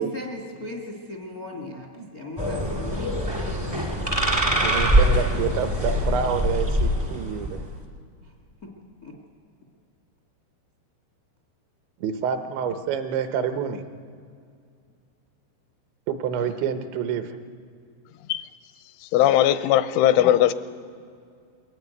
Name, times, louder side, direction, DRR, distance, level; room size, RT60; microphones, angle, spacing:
voice 1, 0.0-3.2 8.6-8.7 9.0-9.1, left 2 dB, 65° left, 0.8 m, -37 dB
voice 2, 1.7-2.1 4.6-7.7 12.0-13.8 16.1-17.4, right 7 dB, 75° right, 3.2 m, -28 dB
sound 1, 2.4-7.7, equal, 20° right, 0.6 m, -23 dB
voice 3, 19.1-20.5, left 12 dB, 85° left, 3.1 m, -18 dB
22.0 x 14.5 x 9.4 m
omnidirectional pair, 5.4 m